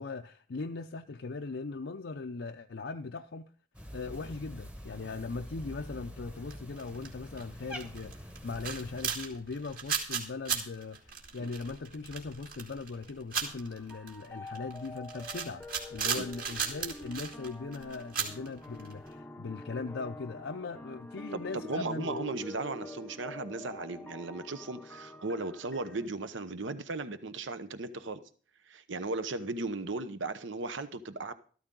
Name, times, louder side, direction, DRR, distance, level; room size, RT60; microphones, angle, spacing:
voice 1, 0.0-3.5 3.9-22.2, left 4 dB, 65° left, 0.5 m, -39 dB
Cat, 3.7-9.2, equal, 5° right, 1.0 m, -46 dB
sound 1, 6.5-7.4 7.7-19.1, right 6 dB, 45° right, 2.4 m, -36 dB
sound 2, 13.4-26.1, left 2 dB, 10° left, 0.6 m, -46 dB
voice 2, 21.3-28.2 28.7-31.3, right 3 dB, 75° right, 0.9 m, -36 dB
13.5 x 13.5 x 3.8 m
head